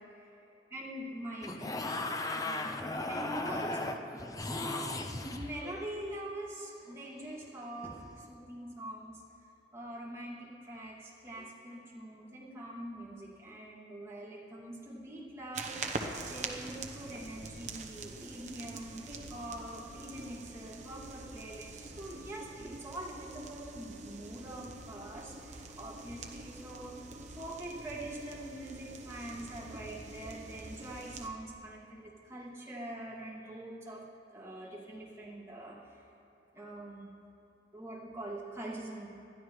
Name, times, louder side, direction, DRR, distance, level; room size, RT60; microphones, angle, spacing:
voice 1, 0.0-1.7 2.3-4.0 4.4-9.2 9.7-15.8 16.3-34.0 34.3-36.1 36.5-37.1 37.7-39.1, right 1 dB, 15° right, -7 dB, 2.4 m, -44 dB
sound 1, 1.4-5.8 8.0-8.3, left 2 dB, 20° left, 0.6 m, -36 dB
sound 2, 15.5-31.3, right 3 dB, 40° right, 0.9 m, -45 dB
20.5 x 12.5 x 3.2 m, 2.7 s
head